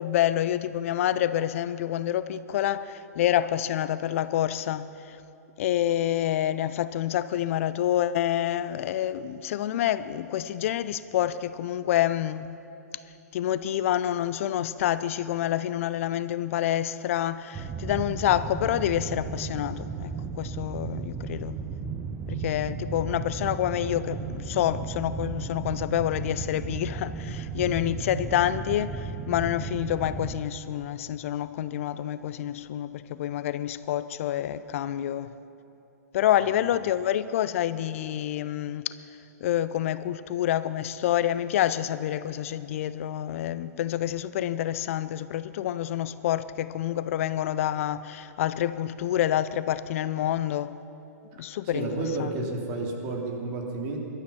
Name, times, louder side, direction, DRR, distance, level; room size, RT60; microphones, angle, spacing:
voice 1, 0.0-5.2 5.6-12.5 13.3-21.6 22.3-35.3 36.1-38.9 39.4-50.8 51.4-51.9 52.2-52.3, left 12 dB, 55° left, 0.5 m, -27 dB
sound 1, 17.5-30.4, right 5 dB, 15° right, 0.9 m, -35 dB
voice 2, 51.7-54.0, right 3 dB, 40° right, 2.9 m, -31 dB
18.0 x 12.5 x 5.8 m
hypercardioid pair, 120°, 9 cm